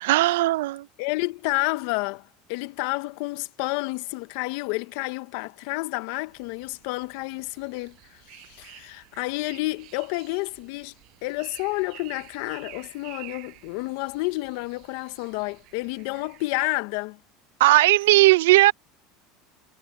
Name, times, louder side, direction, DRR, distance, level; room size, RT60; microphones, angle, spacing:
voice 1, 0.0-0.9 17.6-18.7, right 18 dB, 75° right, 0.9 m, -17 dB
voice 2, 1.0-10.9 11.2-17.2, left 24 dB, 70° left, 1.5 m, -30 dB
sound 1, 6.3-16.7, right 22 dB, 60° right, 7.8 m, -50 dB
hypercardioid pair, 90°, 0 cm